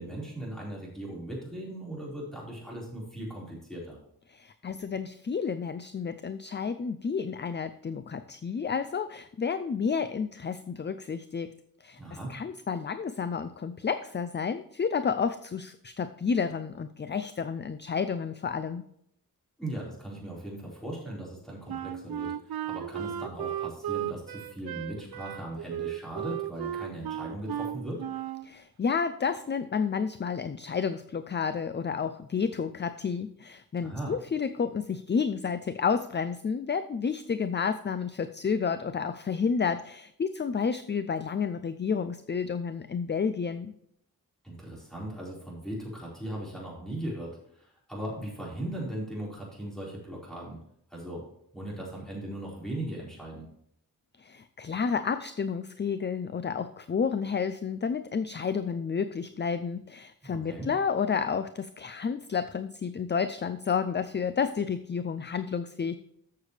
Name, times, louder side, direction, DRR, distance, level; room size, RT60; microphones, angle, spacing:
voice 1, 0.0-4.0 12.0-12.3 19.6-22.3 22.6-28.0 33.8-34.1 44.4-50.6 50.9-51.2 51.5-53.4 60.2-60.7, right 1 dB, ahead, -5 dB, 4.6 m, -38 dB
voice 2, 4.3-11.5 11.8-12.0 12.3-18.8 28.4-43.7 54.2-66.0, left 6 dB, 30° left, 11 dB, 0.4 m, -30 dB
Wind instrument woodwind instrument, 21.7-28.5, right 11 dB, 85° right, 0.6 m, -35 dB
13.5 x 6.9 x 3.3 m, 0.72 s
wide cardioid pair, 130°, 36 cm